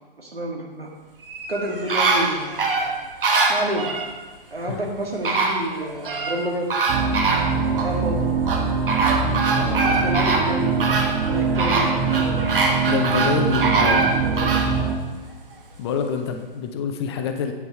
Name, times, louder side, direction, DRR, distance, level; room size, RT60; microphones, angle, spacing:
voice 1, 0.2-0.9 1.5-3.0 3.5-3.9 4.5-6.7 7.7-8.3 9.6-12.4 13.4-14.6, right 1 dB, 85° right, 0 dB, 1.8 m, -29 dB
sound 1, 1.2-4.1 4.9-5.0 5.2-6.4 6.7-7.9 8.5-14.7 15.2-15.3, right 3 dB, 65° right, 1.3 m, -23 dB
sound 2, 6.9-15.0, right 5 dB, 25° right, 1.0 m, -23 dB
voice 2, 9.5-10.1 12.9-14.2 15.8-17.5, left 6 dB, 30° left, 6 dB, 0.6 m, -26 dB
8.0 x 5.3 x 4.5 m, 1.3 s
figure-of-eight pair, 125°, 29 cm